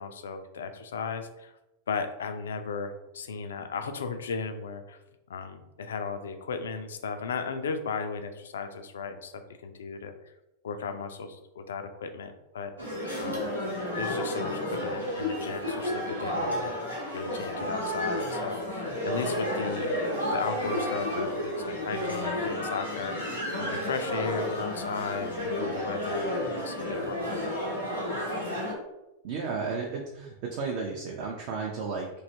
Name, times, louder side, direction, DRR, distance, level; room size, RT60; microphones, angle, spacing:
voice 1, 0.0-1.5 1.9-5.0 5.3-10.3 10.6-12.7 13.2-13.5 13.9-16.7 17.1-20.0 20.3-27.5, left 5 dB, 65° left, 8 dB, 0.3 m, -36 dB
sound 1, 12.8-28.7, left 1 dB, 90° right, 1.0 m, -31 dB
voice 2, 29.2-32.1, right 4 dB, 50° right, 0 dB, 0.4 m, -33 dB
3.1 x 2.7 x 2.7 m, 0.96 s
figure-of-eight pair, 90°, 0 cm